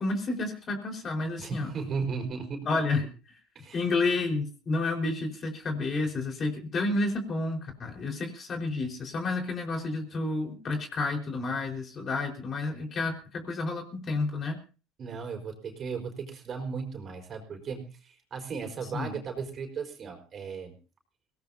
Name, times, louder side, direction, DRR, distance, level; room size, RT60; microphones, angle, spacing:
voice 1, 0.0-1.7 2.7-3.1 3.7-14.6 18.9-19.1, left 3 dB, 35° left, 4 dB, 4.5 m, -30 dB
voice 2, 1.4-2.7 3.5-3.8 15.0-20.8, right 5 dB, 40° right, 3 dB, 4.7 m, -36 dB
23.5 x 18.0 x 2.8 m, 0.35 s
supercardioid pair, 100°, 0 cm